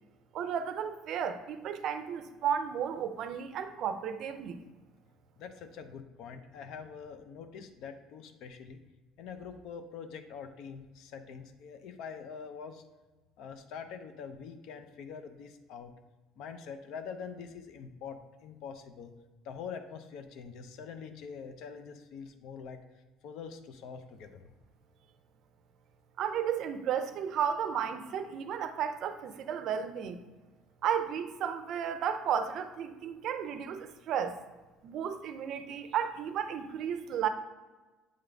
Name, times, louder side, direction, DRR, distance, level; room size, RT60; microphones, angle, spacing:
voice 1, 0.3-4.6 26.2-30.2 30.8-34.4 34.8-37.3, right 8 dB, 55° right, 9 dB, 0.5 m, -33 dB
voice 2, 5.4-8.8 9.2-12.8 13.4-15.9 16.4-19.1 19.4-22.8 23.2-24.5, left 6 dB, 65° left, 8 dB, 0.5 m, -44 dB
7.6 x 3.7 x 3.4 m, 1.2 s
cardioid pair, 130°, 0 cm